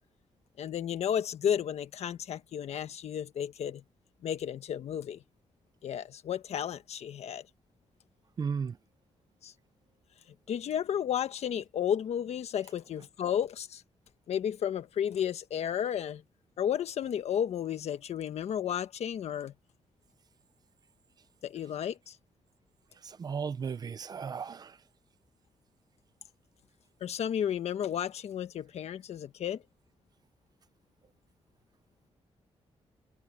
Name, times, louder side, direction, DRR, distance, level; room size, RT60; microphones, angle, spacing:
voice 1, 0.6-3.8 4.2-5.2 5.8-7.4 9.4-9.5 10.5-13.8 14.3-16.2 16.6-19.5 21.4-22.2 27.0-29.6, left 9 dB, 75° left, 1.3 m, -32 dB
voice 2, 8.4-8.8 23.0-24.8, right 6 dB, 35° right, 0.7 m, -35 dB
wide cardioid pair, 180°, 11 cm